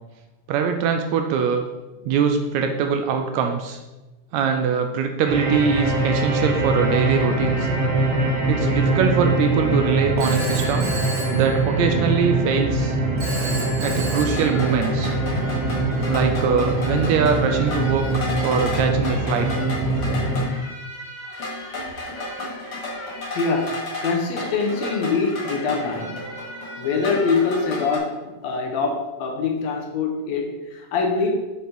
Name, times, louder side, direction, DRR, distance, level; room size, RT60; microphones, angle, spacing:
voice 1, 0.5-1.6 2.1-3.8 4.3-7.7 8.5-10.9 11.3-13.0 13.8-15.2 16.1-19.5, right 6 dB, 80° right, 5 dB, 1.7 m, -22 dB
sound 1, 5.3-20.4, right 2 dB, 65° right, 3.0 m, -23 dB
Telephone, 10.2-12.1 13.2-15.1, right 1 dB, 40° right, 2.1 m, -32 dB
sound 2, 14.3-28.0, left 1 dB, 40° left, 2.0 m, -32 dB
voice 2, 23.3-26.2 26.8-31.4, left 4 dB, 70° left, 2 dB, 1.9 m, -24 dB
6.7 x 5.0 x 4.3 m, 1.1 s
omnidirectional pair, 3.5 m